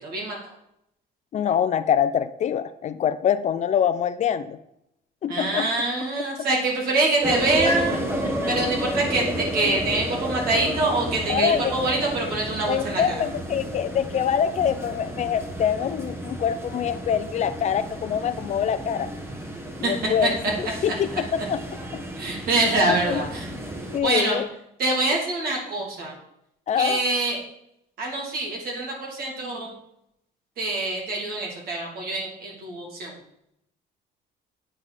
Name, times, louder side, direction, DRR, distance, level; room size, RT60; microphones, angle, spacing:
voice 1, 0.0-0.4 5.3-8.0 8.5-13.1 19.8-19.9 20.2-20.3 21.1-21.2 22.2-23.5 24.0-24.4 24.8-26.1 26.7-27.4 28.0-29.7 30.6-33.1, right 2 dB, 65° right, -1 dB, 2.9 m, -25 dB
voice 2, 1.3-4.6 5.2-5.7 11.3-11.7 12.7-19.1 19.8-21.6 21.9-22.0 23.0-23.2 23.9-24.5 26.7-27.0, left 8 dB, 45° left, 13 dB, 0.4 m, -25 dB
sound 1, 7.2-24.0, right 1 dB, 15° right, 1.2 m, -32 dB
8.5 x 5.1 x 4.2 m, 0.79 s
cardioid pair, 110°, 17 cm